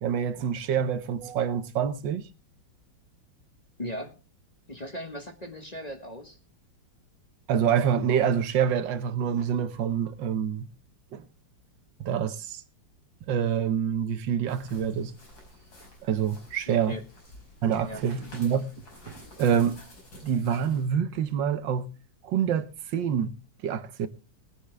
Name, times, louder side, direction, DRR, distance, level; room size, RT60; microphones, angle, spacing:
voice 1, 0.0-2.3 7.5-10.7 11.1-11.2 12.0-12.6 13.3-15.1 16.0-17.0 17.6-18.7 19.1-19.8 20.2-21.9 22.2-23.4 23.6-24.1, right 8 dB, 75° right, 1.5 m, -26 dB
voice 2, 3.8-4.2 4.7-6.4 16.7-17.0 17.8-18.0, left 1 dB, 25° left, 1.4 m, -38 dB
sound 1, 14.5-20.9, left 1 dB, 90° left, 6.1 m, -51 dB
19.5 x 9.8 x 3.3 m
omnidirectional pair, 2.0 m